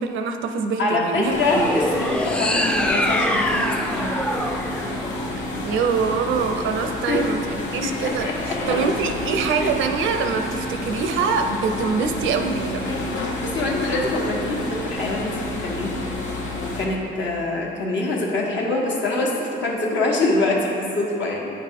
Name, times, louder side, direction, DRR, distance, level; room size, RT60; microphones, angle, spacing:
voice 1, 0.0-1.8 5.6-12.8, right 5 dB, 80° right, 5 dB, 0.6 m, -24 dB
voice 2, 0.8-4.2 7.1-7.2 7.8-8.8 9.6-9.7 13.4-16.0 16.6-21.5, left 2 dB, 70° left, -3 dB, 1.2 m, -25 dB
sound 1, 1.2-16.9, left 1 dB, 85° left, 0.9 m, -29 dB
sound 2, 1.4-5.8, left 1 dB, 5° left, 0.3 m, -24 dB
8.7 x 4.0 x 3.7 m, 2.7 s
cardioid pair, 90°, 20 cm